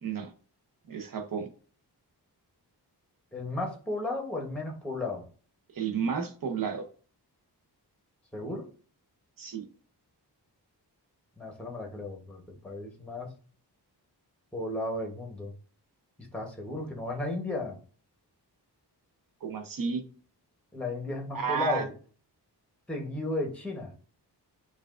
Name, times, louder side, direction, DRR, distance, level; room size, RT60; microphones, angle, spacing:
voice 1, 0.9-1.5 5.7-6.8 9.4-9.7 19.4-20.0 21.3-21.9, right 6 dB, 55° right, 6 dB, 0.8 m, -31 dB
voice 2, 3.3-5.2 8.3-8.7 11.4-13.3 14.5-15.5 16.3-17.8 20.7-21.9 22.9-23.9, left 2 dB, 5° left, 1 dB, 0.8 m, -34 dB
5.7 x 2.4 x 2.4 m, 0.40 s
wide cardioid pair, 175°, 41 cm